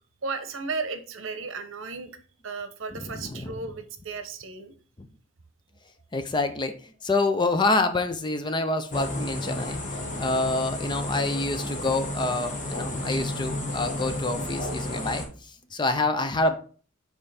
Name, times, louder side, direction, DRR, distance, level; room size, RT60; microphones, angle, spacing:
voice 1, 0.2-2.1 2.4-4.7, right 4 dB, 75° right, 9 dB, 0.9 m, -34 dB
voice 2, 2.9-3.6 5.0-5.1 6.1-9.8 10.2-15.2 15.7-16.6, left 2 dB, 25° left, 8 dB, 0.6 m, -27 dB
sound 1, 8.9-15.3, left 1 dB, 40° left, 1.4 m, -32 dB
5.5 x 4.6 x 4.1 m, 0.42 s
head